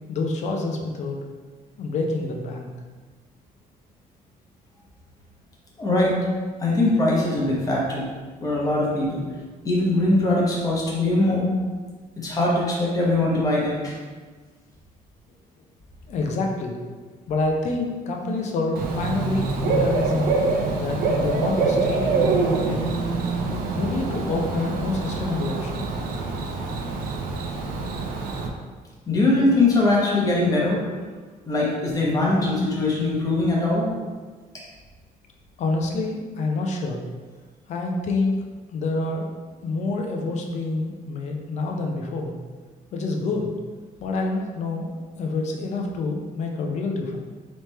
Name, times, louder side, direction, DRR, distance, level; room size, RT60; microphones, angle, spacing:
voice 1, 0.1-1.2 1.8-2.7 16.1-16.8 17.3-20.3 20.8-23.0 23.7-25.9 35.6-37.0 37.7-38.4 38.7-39.3 39.6-42.3 42.9-43.5 44.0-47.2, left 3 dB, 50° left, 1 dB, 0.6 m, -27 dB
voice 2, 5.8-6.2 6.6-8.1 8.4-9.3 9.6-11.5 12.2-13.9 29.1-30.8 31.5-33.9 34.5-34.6, left 2 dB, 20° left, -4 dB, 1.0 m, -21 dB
Bird / Cricket, 18.8-28.5, right 3 dB, 70° right, 0.6 m, -25 dB
3.3 x 3.2 x 4.2 m, 1.4 s
cardioid pair, 170°, 15 cm